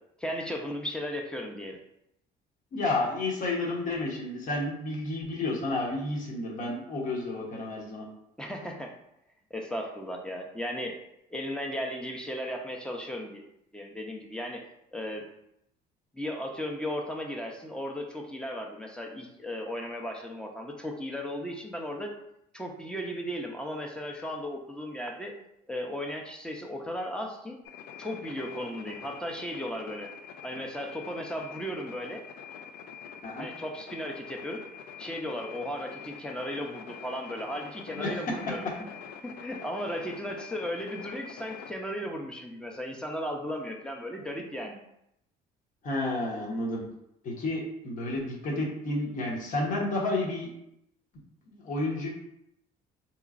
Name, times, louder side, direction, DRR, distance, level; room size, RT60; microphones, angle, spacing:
voice 1, 0.2-1.8 8.4-8.9 9.5-11.0 11.3-13.4 13.7-14.6 14.9-15.3 16.1-22.2 22.5-25.3 25.7-27.6 28.0-30.1 30.4-32.2 33.4-34.6 35.0-38.6 39.2-44.8, equal, 5° left, 1 dB, 0.5 m, -36 dB
voice 2, 2.7-8.0 33.2-33.5 37.9-38.2 45.8-46.8 47.2-50.5 51.5-52.1, left 2 dB, 50° left, -2 dB, 1.0 m, -31 dB
sound 1, 27.7-41.7, left 7 dB, 80° left, 0.4 m, -45 dB
3.8 x 3.0 x 2.5 m, 0.79 s
cardioid pair, 110°, 17 cm